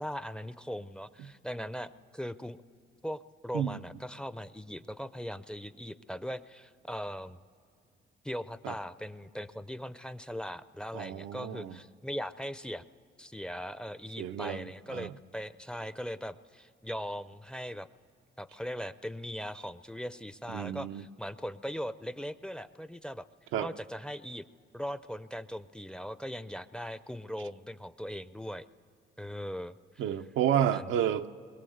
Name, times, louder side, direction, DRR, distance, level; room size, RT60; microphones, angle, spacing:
voice 1, 0.0-2.6 3.0-7.4 8.2-12.8 13.2-17.9 18.4-23.2 23.6-24.4 24.7-28.6 29.2-30.1 30.7-30.9, equal, 5° left, 15 dB, 0.5 m, -39 dB
voice 2, 10.9-11.8 14.2-15.1 20.5-21.0 23.5-23.7 30.0-31.3, right 10 dB, 85° right, 7 dB, 0.7 m, -31 dB
27.5 x 22.5 x 7.9 m, 2.3 s
cardioid pair, 90°, 20 cm